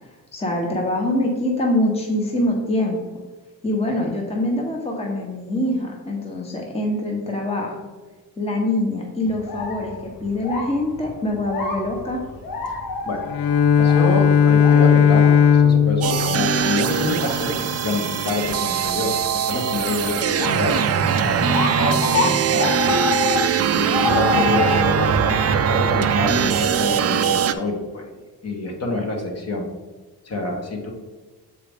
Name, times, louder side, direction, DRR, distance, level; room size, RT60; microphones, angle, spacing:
voice 1, 0.3-3.0 3.6-7.8 8.4-12.2, left 1 dB, 15° left, 0 dB, 0.9 m, -24 dB
sound 1, 9.3-26.6, left 5 dB, 55° left, 1.2 m, -29 dB
Bowed string instrument, 13.2-17.4, left 7 dB, 80° left, 0.6 m, -17 dB
voice 2, 13.8-20.8 21.2-29.7 30.2-30.9, left 2 dB, 40° left, 2 dB, 1.3 m, -27 dB
sound 2, 16.0-27.5, right 7 dB, 40° right, 0.4 m, -21 dB
7.4 x 4.6 x 3.5 m, 1.3 s
cardioid pair, 125°, 39 cm